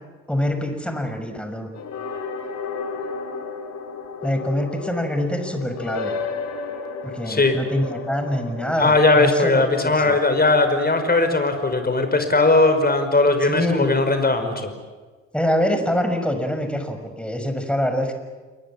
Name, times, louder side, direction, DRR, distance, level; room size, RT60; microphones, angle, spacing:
voice 1, 0.3-1.7 4.2-6.1 7.0-10.2 13.5-13.9 15.3-18.1, left 1 dB, 5° left, 6 dB, 6.2 m, -25 dB
sound 1, 1.7-13.7, left 4 dB, 55° left, 4.3 m, -34 dB
voice 2, 8.8-14.7, left 2 dB, 30° left, 7 dB, 5.4 m, -18 dB
29.0 x 23.0 x 7.5 m, 1.4 s
figure-of-eight pair, 40°, 33 cm